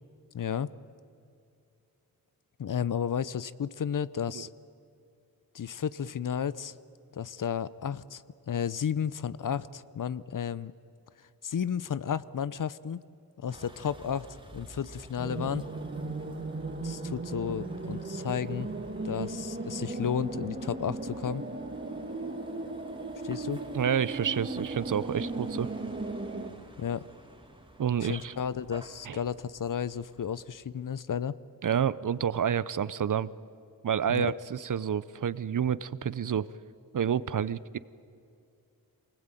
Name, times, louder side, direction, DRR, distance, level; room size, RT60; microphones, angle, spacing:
voice 1, 0.3-0.7 2.6-4.5 5.5-6.7 7.1-10.7 11.4-13.0 13.4-14.3 14.5-15.6 16.8-18.7 19.0-21.4 23.2-23.6 26.8-27.1 28.0-31.3 34.1-34.4, left 8 dB, 60° left, 18 dB, 0.7 m, -33 dB
Vehicle, 13.5-30.4, right 1 dB, 15° right, 2.6 m, -52 dB
sound 1, 15.2-26.5, right 2 dB, 30° right, 1.8 m, -36 dB
voice 2, 23.7-25.7 27.8-28.3 29.1-29.2 31.6-33.3 33.8-36.5 36.9-37.8, right 8 dB, 60° right, 18 dB, 0.6 m, -29 dB
24.0 x 19.5 x 9.1 m, 2.5 s
wide cardioid pair, 80°, 36 cm